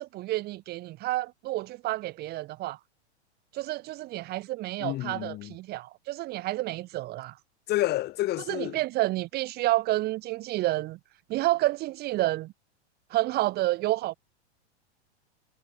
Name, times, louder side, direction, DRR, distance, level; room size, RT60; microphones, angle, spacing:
voice 1, 0.0-2.8 3.5-7.3 8.5-11.0 11.3-12.5 13.1-14.2, right 17 dB, 30° right, 1.4 m, -29 dB
voice 2, 4.8-5.5 7.7-8.8, left 16 dB, 30° left, 2.7 m, -29 dB
supercardioid pair, 150°, 34 cm